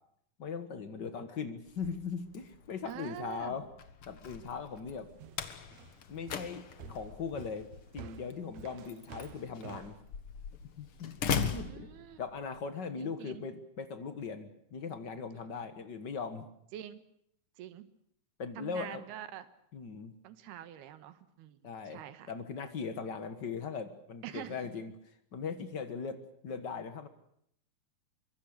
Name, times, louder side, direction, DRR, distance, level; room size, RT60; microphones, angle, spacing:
voice 1, 0.4-3.7 4.1-5.1 6.1-10.0 10.8-11.9 12.2-16.5 18.4-19.0 19.7-20.1 21.6-22.0 22.3-24.9 25.3-27.1, left 5 dB, 80° left, 9 dB, 0.9 m, -39 dB
Slam, 1.7-12.6, left 7 dB, 50° left, 1.8 m, -40 dB
voice 2, 2.9-3.6 11.4-12.2 13.0-13.4 16.7-17.0 17.6-17.9 18.6-19.5 20.2-22.3 24.2-24.7, right 12 dB, 85° right, 13 dB, 3.4 m, -45 dB
sound 1, 5.2-10.0, right 8 dB, 65° right, 1.8 m, -50 dB
24.5 x 23.5 x 6.6 m, 0.70 s
omnidirectional pair, 4.5 m